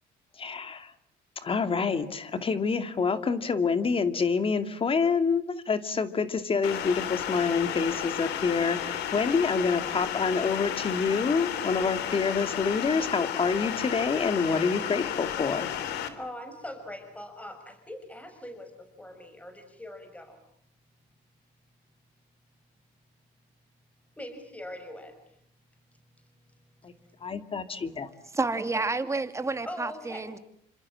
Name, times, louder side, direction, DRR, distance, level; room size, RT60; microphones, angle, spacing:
voice 1, 0.4-0.9 1.4-15.7 26.8-26.9 27.2-28.1, left 5 dB, 35° left, 2.4 m, -27 dB
sound 1, 6.6-16.1, left 10 dB, 85° left, 3.4 m, -33 dB
voice 2, 16.1-20.4 24.2-25.2 29.6-30.3, left 1 dB, 10° left, 5.9 m, -42 dB
voice 3, 28.3-30.4, right 3 dB, 15° right, 2.5 m, -30 dB
29.0 x 26.5 x 7.6 m
cardioid pair, 110°, 17 cm